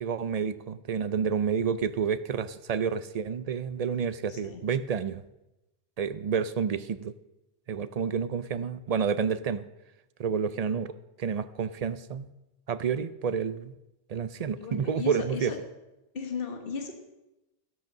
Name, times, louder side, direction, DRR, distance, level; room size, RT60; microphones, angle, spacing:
voice 1, 0.0-5.2 6.0-7.1 7.7-9.7 10.2-12.3 12.7-13.7 14.1-15.5, right 6 dB, 50° right, 14 dB, 0.5 m, -29 dB
voice 2, 4.3-4.6 14.6-15.6 16.1-17.0, left 5 dB, 60° left, 5 dB, 1.5 m, -36 dB
13.5 x 8.0 x 6.0 m, 0.96 s
omnidirectional pair, 1.1 m